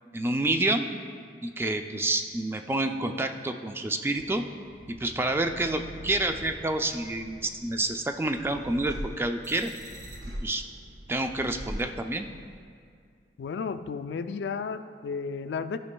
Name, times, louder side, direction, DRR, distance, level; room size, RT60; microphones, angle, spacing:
voice 1, 0.1-0.9 1.4-4.4 4.9-9.7 10.4-10.6 11.1-12.3, right 2 dB, 15° right, 6 dB, 0.3 m, -28 dB
sound 1, 4.2-12.5, equal, 85° right, 1.1 m, -43 dB
voice 2, 13.4-15.8, left 5 dB, 70° left, 10 dB, 0.3 m, -33 dB
14.0 x 5.2 x 2.2 m, 2.2 s
head